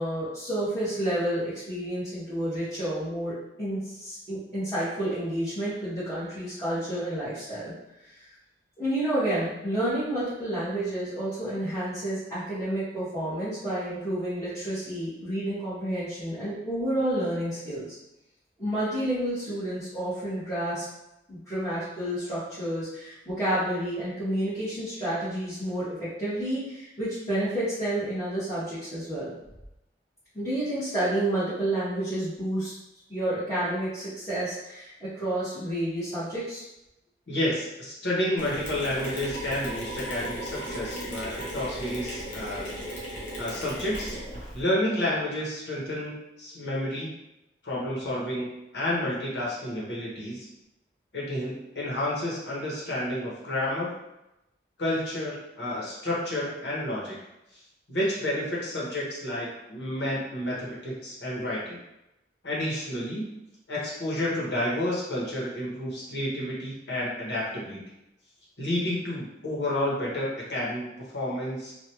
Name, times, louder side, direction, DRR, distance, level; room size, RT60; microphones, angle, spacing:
voice 1, 0.0-7.7 8.1-8.3 8.8-17.9 18.6-20.8 21.3-29.3 30.3-32.7 33.1-36.6, right 1 dB, 20° left, -16 dB, 1.5 m, -30 dB
voice 2, 37.3-42.7 43.4-44.2 44.5-47.1 47.6-50.5 51.1-53.9 54.8-57.2 57.9-61.8 62.4-63.3 63.7-67.8 68.6-71.7, left 1 dB, 80° left, -5 dB, 1.2 m, -30 dB
Mechanisms, 38.4-44.6, right 1 dB, 45° left, 0.9 m, -36 dB
3.2 x 2.5 x 2.9 m, 0.90 s
head